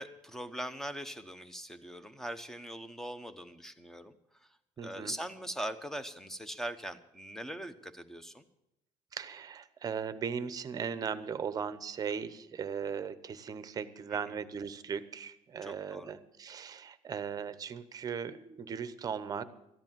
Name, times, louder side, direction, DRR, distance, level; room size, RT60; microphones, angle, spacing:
voice 1, 0.0-4.1 4.4-4.5 4.8-8.4 14.3-14.4 15.6-16.1, right 1 dB, 5° left, 11 dB, 0.9 m, -41 dB
voice 2, 4.8-5.1 9.1-19.4, right 7 dB, 30° right, 13 dB, 0.8 m, -38 dB
14.0 x 10.5 x 7.4 m, 0.84 s
cardioid pair, 130°, 12 cm